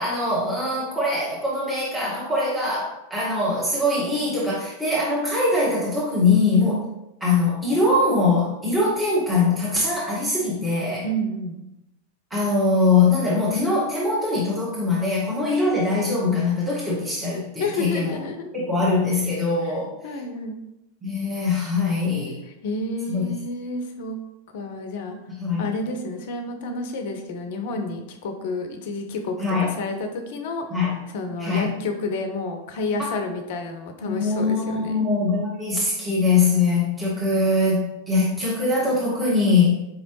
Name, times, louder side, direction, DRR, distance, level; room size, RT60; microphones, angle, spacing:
voice 1, 0.0-6.8 7.2-11.1 12.3-18.2 18.5-19.9 21.0-22.4 23.1-23.3 25.4-25.7 29.4-29.7 30.7-30.9 31.4-31.6 34.0-39.9, left 3 dB, 10° right, -8 dB, 1.4 m, -22 dB
voice 2, 11.0-11.6 17.6-18.5 19.6-19.8 20.0-20.6 22.6-24.2 24.5-25.2 25.6-30.6 31.1-35.1, left 2 dB, 50° left, 5 dB, 0.5 m, -30 dB
4.9 x 3.0 x 3.1 m, 0.90 s
figure-of-eight pair, 90°, 0 cm